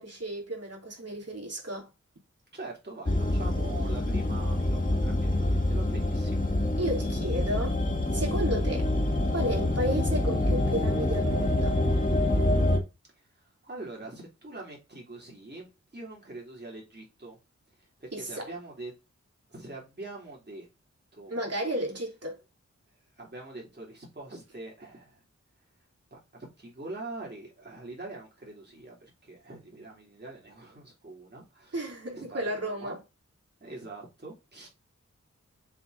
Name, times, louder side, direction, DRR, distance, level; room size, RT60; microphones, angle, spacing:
voice 1, 0.0-1.9 6.8-7.8 8.1-8.9 9.3-11.8 18.1-18.5 21.3-22.4 31.7-33.0, right 1 dB, 55° right, 2.9 m, -33 dB
voice 2, 2.5-6.5 13.3-17.4 17.8-18.9 19.5-20.7 21.1-21.4 23.2-25.2 26.1-31.8 32.1-33.0 33.6-34.7, right 2 dB, 35° right, 3.4 m, -44 dB
sound 1, 3.1-12.8, left 1 dB, 30° left, 1.8 m, -26 dB
7.0 x 4.4 x 3.9 m
wide cardioid pair, 75°, 29 cm